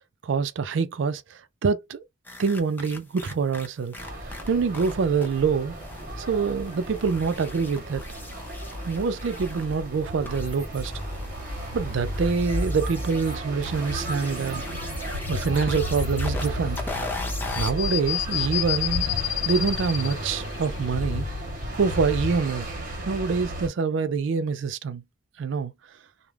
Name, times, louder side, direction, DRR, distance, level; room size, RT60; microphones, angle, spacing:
voice 1, 0.2-2.0 2.4-4.0 4.5-5.8 6.2-8.0 8.8-10.9 11.7-14.6 15.3-16.8 17.5-19.1 19.4-21.3 21.7-22.7 23.1-25.0 25.4-25.7, right 5 dB, 70° right, 0.4 m, -25 dB
sound 1, 2.2-4.9 5.2-5.4 5.7-17.7, left 2 dB, 10° left, 0.4 m, -39 dB
sound 2, 4.0-23.7, right 1 dB, 45° right, 0.9 m, -34 dB
sound 3, 14.0-22.4, left 8 dB, 85° left, 0.4 m, -32 dB
2.3 x 2.1 x 3.2 m
head